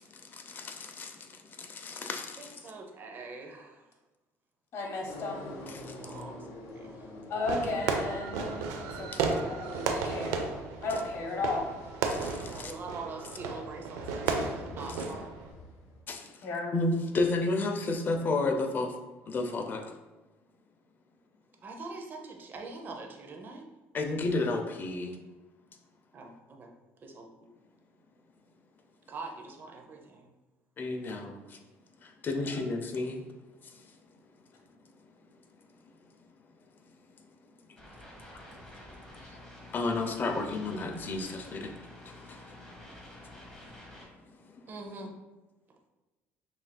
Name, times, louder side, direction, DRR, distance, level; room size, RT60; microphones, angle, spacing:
voice 1, 0.0-2.7 5.7-6.2 9.1-9.2 12.1-12.7 14.3-14.4 16.1-19.0 19.3-20.0 23.9-25.2 27.4-27.5 30.8-31.6 32.0-33.2 33.6-34.0 37.3-37.4 38.3-38.6 39.2-39.4 39.7-41.8 42.0-42.8 43.0-43.6 44.2-44.6 45.0-45.2, left 3 dB, 40° left, 0.5 m, -33 dB
voice 2, 2.4-3.9 6.0-6.5 6.7-7.1 12.5-15.3 21.6-23.7 26.1-26.7 27.0-27.3 29.1-30.3 44.7-45.1, right 3 dB, 40° right, 0.6 m, -43 dB
voice 3, 4.7-5.5 7.3-10.5 10.8-11.7 16.4-16.7 31.0-31.1 32.5-32.6, left 3 dB, 55° left, 0.9 m, -35 dB
sound 1, 5.1-16.0, left 1 dB, 90° left, 0.7 m, -48 dB
Fireworks, 7.5-15.5, right 4 dB, 85° right, 0.4 m, -34 dB
sound 2, 37.8-44.1, left 1 dB, 10° left, 1.0 m, -49 dB
5.7 x 2.5 x 2.2 m
cardioid pair, 110°, 5 cm